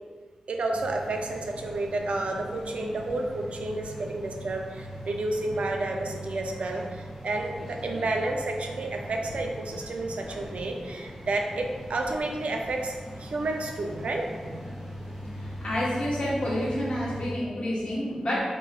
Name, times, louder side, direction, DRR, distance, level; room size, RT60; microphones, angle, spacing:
voice 1, 0.5-12.9 13.2-14.6, right 2 dB, 75° right, 2 dB, 0.4 m, -31 dB
sound 1, 0.7-17.3, equal, 5° left, 1.2 m, -40 dB
voice 2, 15.4-18.4, equal, 55° left, -7 dB, 1.2 m, -29 dB
4.7 x 3.0 x 2.4 m, 1.5 s
wide cardioid pair, 115°, 2 cm